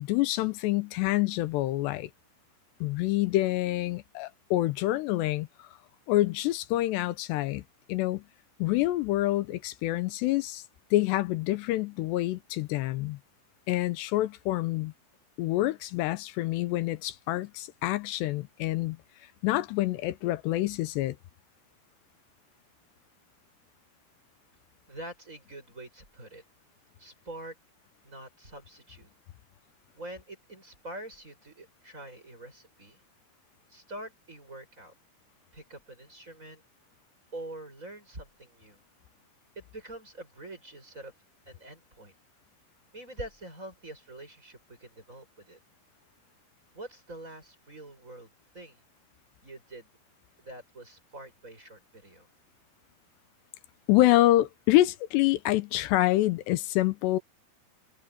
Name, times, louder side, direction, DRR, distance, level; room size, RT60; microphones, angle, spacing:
voice 1, 0.0-2.1 2.8-5.7 6.1-7.6 7.9-8.2 8.6-10.6 10.9-13.2 13.7-14.9 15.4-19.0 19.4-21.2 53.9-57.2, left 16 dB, 80° left, 2.8 m, -27 dB
voice 2, 24.9-26.4 27.0-27.6 28.0-29.1 29.9-33.0 33.7-34.9 35.5-36.6 37.3-38.8 39.5-41.1 41.5-42.1 42.9-45.6 46.7-48.8 49.4-49.9 50.4-52.3, right 1 dB, 15° right, 8.2 m, -45 dB
omnidirectional pair, 5.1 m